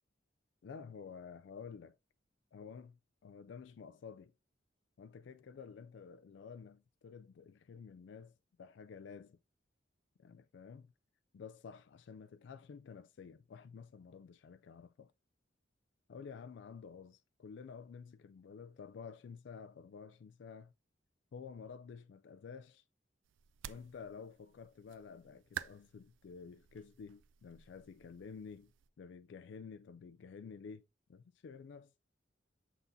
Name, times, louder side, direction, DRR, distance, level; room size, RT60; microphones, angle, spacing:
voice 1, 0.6-2.0 2.5-4.3 5.0-9.4 10.2-10.9 11.3-15.1 16.1-20.7 21.3-22.8 23.7-28.7 29.0-30.8 31.1-31.9, left 6 dB, 70° left, 0.3 m, -51 dB
sound 1, 23.2-28.9, right 9 dB, 90° right, 0.4 m, -51 dB
6.9 x 6.0 x 2.7 m
head